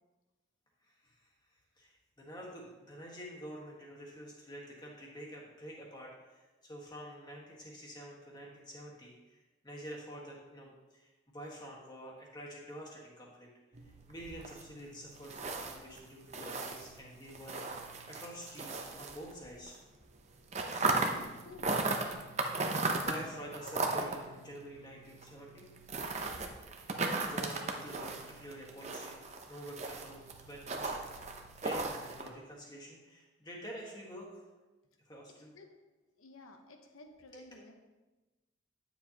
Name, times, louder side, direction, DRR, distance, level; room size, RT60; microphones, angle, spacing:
voice 1, 0.8-1.3 1.7-13.5 14.1-19.8 22.4-25.7 27.1-29.2 29.5-30.9 31.6-34.5 35.0-35.5 37.3-37.5, equal, 20° left, -3 dB, 1.5 m, -48 dB
sound 1, 13.7-19.7 20.0-32.3, right 3 dB, 35° right, 0.7 m, -37 dB
voice 2, 21.0-22.0 35.4-35.8 36.1-37.7, left 2 dB, 90° left, 4 dB, 1.0 m, -53 dB
10.0 x 7.2 x 2.9 m, 1.1 s
head